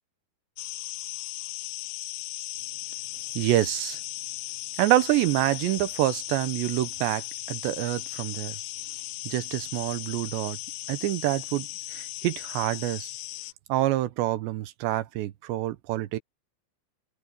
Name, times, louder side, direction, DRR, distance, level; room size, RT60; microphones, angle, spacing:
sound 1, 0.6-13.5, left 19 dB, 85° left, 2.5 m, -37 dB
voice 1, 3.4-4.0 4.8-8.6 9.3-10.6 10.9-13.1 13.7-16.2, right 15 dB, 75° right, 2.9 m, -27 dB
omnidirectional pair, 5.6 m